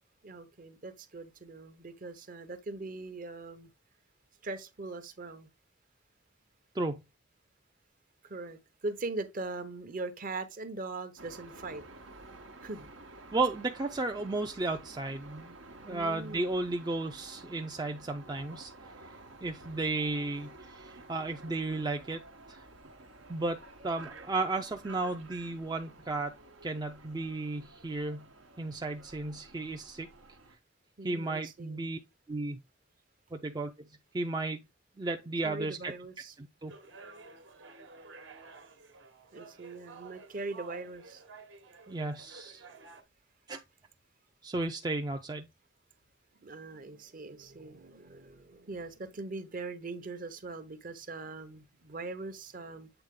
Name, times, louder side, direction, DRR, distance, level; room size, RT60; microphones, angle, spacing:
voice 1, 0.2-3.7 4.4-5.5 8.2-11.8 12.6-12.9 15.9-16.4 31.0-31.8 35.4-36.3 39.3-41.3 46.4-52.9, right 3 dB, 45° right, 0.9 m, -41 dB
sound 1, 11.2-30.6, right 2 dB, 85° right, 1.1 m, -52 dB
voice 2, 13.3-15.5 15.8-18.7 19.4-22.2 22.5-22.6 23.3-26.3 26.6-28.3 28.6-30.1 31.0-32.0 32.3-32.6 33.3-33.7 34.1-34.6 35.0-35.9 36.4-36.7 41.9-42.6 43.5-43.6 44.4-45.5, right 2 dB, 20° right, 0.4 m, -34 dB
sound 2, 36.7-43.0, right 3 dB, 70° right, 1.3 m, -52 dB
8.0 x 4.0 x 3.6 m
head